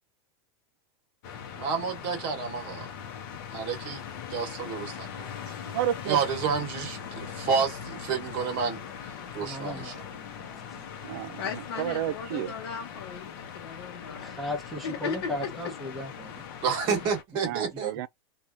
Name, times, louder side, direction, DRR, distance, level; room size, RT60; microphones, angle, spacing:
sound 1, 1.2-17.2, left 8 dB, 50° left, 0.7 m, -41 dB
voice 1, 1.5-2.9 3.5-4.0 4.3-5.3 6.0-8.8 9.3-9.9 16.6-17.9, right 6 dB, 35° right, 1.2 m, -30 dB
voice 2, 5.7-6.2 11.0-11.4 11.8-12.5 17.4-18.1, right 12 dB, 55° right, 0.4 m, -30 dB
voice 3, 9.4-10.9 13.9-16.5 16.9-17.0, left 1 dB, ahead, 0.8 m, -37 dB
voice 4, 11.4-14.3 14.8-15.5, left 6 dB, 85° left, 0.8 m, -36 dB
2.9 x 2.4 x 2.5 m
supercardioid pair, 165°, 13 cm